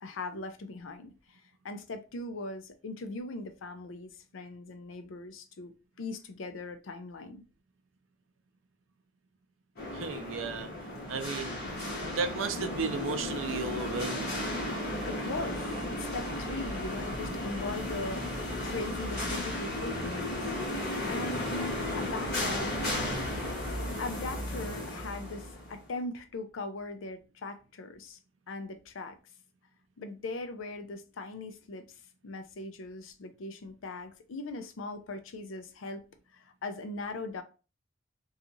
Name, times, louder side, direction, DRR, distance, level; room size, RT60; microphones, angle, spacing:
voice 1, 0.0-7.4 15.1-20.5 21.1-22.8 24.0-28.2 28.5-29.2 30.0-36.0 36.3-37.4, left 2 dB, 90° left, 0.5 m, -40 dB
sound 1, 9.8-25.8, left 1 dB, 55° left, 1.1 m, -34 dB
voice 2, 9.9-10.7 11.1-11.6 12.1-14.3, right 4 dB, 80° right, 0.4 m, -34 dB
2.8 x 2.3 x 2.6 m
head